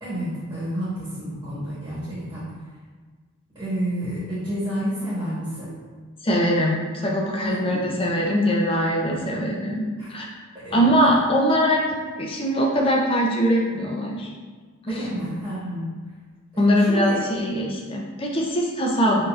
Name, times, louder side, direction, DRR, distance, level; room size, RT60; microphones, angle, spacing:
voice 1, 0.0-2.5 3.5-5.7 7.4-7.9 9.1-9.4 10.0-10.1 10.5-10.9 14.9-15.9 16.5-17.5, equal, 20° right, -11 dB, 1.3 m, -30 dB
voice 2, 6.2-9.8 10.1-10.2 10.7-14.3 14.8-15.1 16.6-19.3, equal, 25° left, -1 dB, 0.5 m, -22 dB
5.1 x 2.7 x 2.4 m, 1.5 s
head